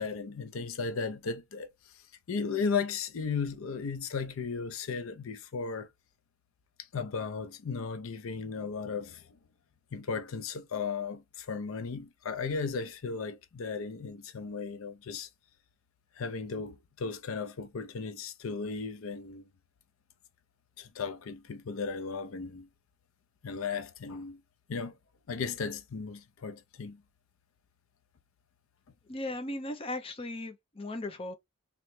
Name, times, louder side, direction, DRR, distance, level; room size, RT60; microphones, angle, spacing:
voice 1, 0.0-1.7 2.3-5.9 6.9-9.2 9.9-15.3 16.2-19.4 20.8-22.7 23.4-24.4 24.7-25.0 25.3-27.0, left 5 dB, 80° left, 0.5 m, -35 dB
voice 2, 29.1-31.3, left 1 dB, 25° left, 0.6 m, -37 dB
3.1 x 3.0 x 3.1 m
head